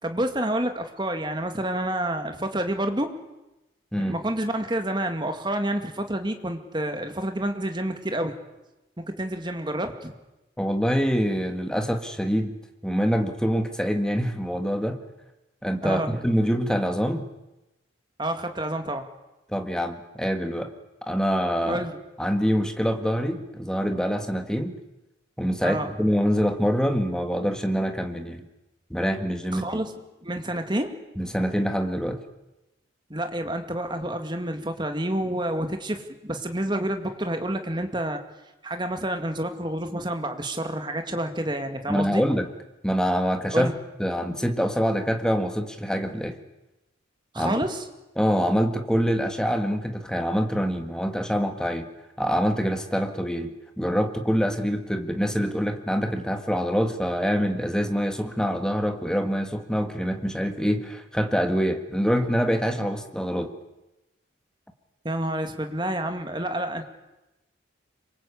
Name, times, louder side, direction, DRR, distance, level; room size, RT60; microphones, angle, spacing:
voice 1, 0.0-3.1 4.0-8.3 9.0-10.1 15.8-16.1 18.2-19.1 21.7-22.0 25.6-25.9 29.5-29.9 30.2-31.0 33.1-38.2 38.6-42.2 43.5-43.7 47.3-47.8 65.0-66.9, right 1 dB, 25° right, 6 dB, 2.2 m, -28 dB
voice 2, 10.6-12.5 12.8-15.0 15.6-17.3 19.5-20.7 21.0-21.8 22.2-24.8 25.4-28.5 28.9-29.8 31.2-32.2 41.9-42.5 42.8-43.7 44.0-46.4 47.4-47.5 48.2-51.9 52.2-63.6, equal, 5° left, 6 dB, 1.7 m, -25 dB
26.5 x 24.0 x 8.5 m, 0.99 s
head